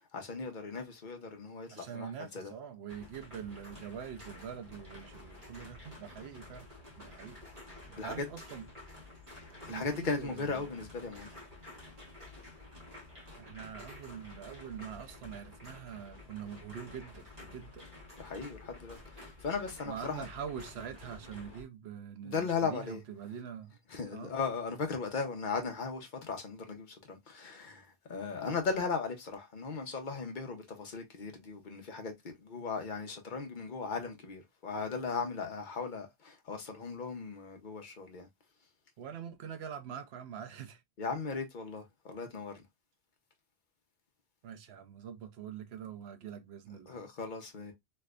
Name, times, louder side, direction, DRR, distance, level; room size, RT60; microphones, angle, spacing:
voice 1, 0.1-2.5 8.0-8.3 9.7-11.3 18.2-20.3 22.2-23.0 23.9-27.8 28.1-32.1 32.4-38.3 41.0-42.5 46.9-47.7, left 4 dB, 50° left, 1.0 m, -37 dB
voice 2, 1.7-6.7 7.0-7.4 7.9-8.7 9.7-10.8 13.4-17.9 19.8-23.8 24.1-24.4 39.0-40.8 44.4-47.0, right 8 dB, 75° right, 1.0 m, -44 dB
sound 1, 2.9-21.6, left 2 dB, 30° right, 1.9 m, -51 dB
3.3 x 3.2 x 2.3 m
omnidirectional pair, 1.1 m